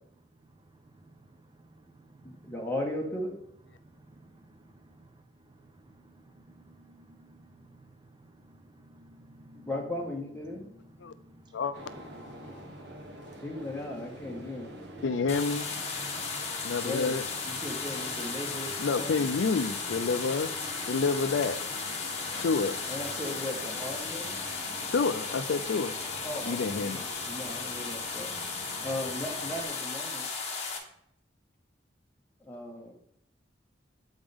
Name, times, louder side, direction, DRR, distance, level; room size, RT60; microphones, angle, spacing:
voice 1, 0.2-2.7 3.7-12.7, right 1 dB, 25° right, 6 dB, 0.6 m, -56 dB
voice 2, 2.2-3.4 9.5-10.7 13.4-14.8 16.8-17.2 17.4-19.3 22.9-24.4 26.2-28.3 28.8-30.3 32.4-32.9, left 1 dB, 10° left, -1 dB, 1.6 m, -37 dB
sound 1, 11.7-29.6, right 1 dB, 65° right, 1.2 m, -46 dB
voice 3, 15.0-15.7 16.6-17.2 18.8-20.5 20.9-21.6 22.4-22.9 24.9-25.9 26.4-27.1, left 4 dB, 80° left, 12 dB, 0.4 m, -28 dB
sound 2, 15.3-30.8, left 4 dB, 35° left, 1.3 m, -35 dB
8.0 x 5.2 x 3.6 m, 0.74 s
head